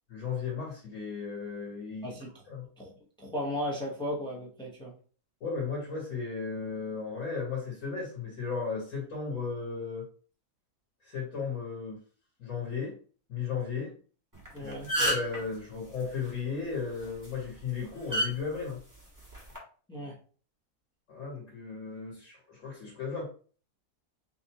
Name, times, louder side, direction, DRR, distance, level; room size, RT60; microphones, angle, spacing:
voice 1, 0.1-2.1 2.5-2.7 5.4-10.0 11.1-12.0 12.4-12.9 13.3-13.9 14.6-18.8 21.1-23.3, left 5 dB, 55° left, -4 dB, 2.1 m, -35 dB
voice 2, 2.0-2.4 2.8-2.9 3.2-4.9 14.5-14.9 19.9-20.1, left 1 dB, 5° left, -4 dB, 1.0 m, -35 dB
sound 1, 14.3-14.5 14.7-15.4 17.0-17.3 18.1-18.3 19.3-19.6, right 1 dB, 10° right, 1.5 m, -27 dB
5.9 x 2.6 x 2.9 m, 0.40 s
omnidirectional pair, 1.6 m